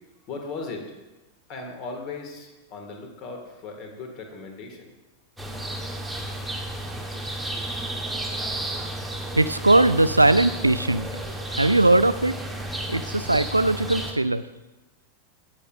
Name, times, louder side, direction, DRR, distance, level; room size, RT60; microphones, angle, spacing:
voice 1, 0.2-0.9 1.5-4.9, left 3 dB, 40° left, 3 dB, 1.7 m, -37 dB
sound 1, 5.4-14.1, right 1 dB, 5° right, 1.1 m, -32 dB
voice 2, 9.4-11.1 11.6-12.3 12.9-14.4, right 2 dB, 85° right, 14 dB, 0.3 m, -19 dB
15.5 x 6.4 x 2.5 m, 1.1 s
figure-of-eight pair, 90°, 0 cm